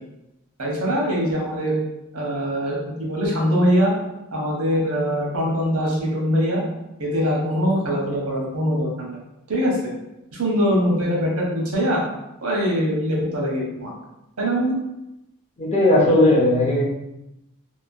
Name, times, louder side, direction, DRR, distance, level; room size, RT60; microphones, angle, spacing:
voice 1, 0.6-1.8 2.1-3.9 4.3-6.6 7.0-9.2 9.5-9.8 10.3-12.0 12.4-13.9 14.4-14.8, equal, 90° right, -3 dB, 0.9 m, -22 dB
voice 2, 15.6-16.8, left 1 dB, 30° left, -4 dB, 0.6 m, -17 dB
2.8 x 2.1 x 2.5 m, 0.90 s
head